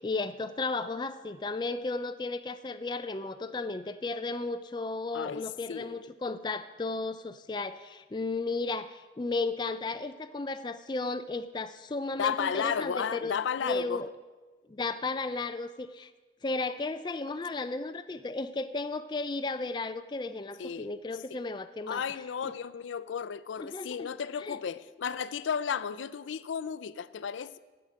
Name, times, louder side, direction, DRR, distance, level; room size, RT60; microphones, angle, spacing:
voice 1, 0.0-14.1 14.7-16.1 16.4-22.0 22.4-22.5 23.6-24.1 24.4-24.6, left 3 dB, 25° left, 0.4 m, -34 dB
voice 2, 5.1-6.0 12.2-14.0 20.6-20.9 21.3-21.4 21.9-27.6, left 7 dB, 90° left, 0.4 m, -33 dB
8.5 x 7.9 x 7.4 m
head